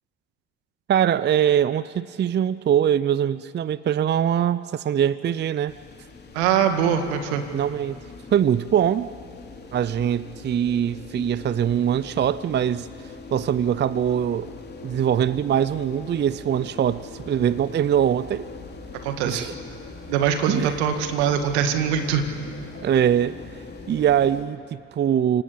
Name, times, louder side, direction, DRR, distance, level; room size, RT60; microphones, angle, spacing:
voice 1, 0.9-5.7 7.5-8.0 8.3-9.1 9.7-12.9 13.3-14.5 14.8-18.5 19.2-19.5 20.5-20.7 22.8-23.3 23.9-25.4, right 9 dB, 30° right, 17 dB, 0.6 m, -22 dB
sound 1, 5.7-24.4, left 4 dB, 30° left, 3.6 m, -41 dB
voice 2, 6.3-7.4 19.0-19.5 20.1-22.2, right 8 dB, 75° right, 7 dB, 2.1 m, -22 dB
29.5 x 18.0 x 8.7 m, 2.3 s
hypercardioid pair, 60°, 33 cm